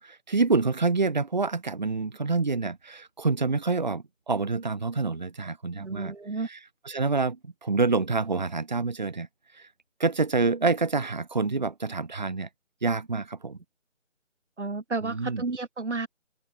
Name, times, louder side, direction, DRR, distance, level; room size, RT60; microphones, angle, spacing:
voice 1, 0.0-6.1 6.5-6.6 6.9-9.3 9.5-9.7 10.0-12.5 12.8-13.6 15.0-15.4, right 4 dB, 35° right, 3.0 m, -27 dB
voice 2, 5.7-6.5 14.6-16.1, right 3 dB, 65° right, 3.7 m, -32 dB
open air
figure-of-eight pair, 180°, 38 cm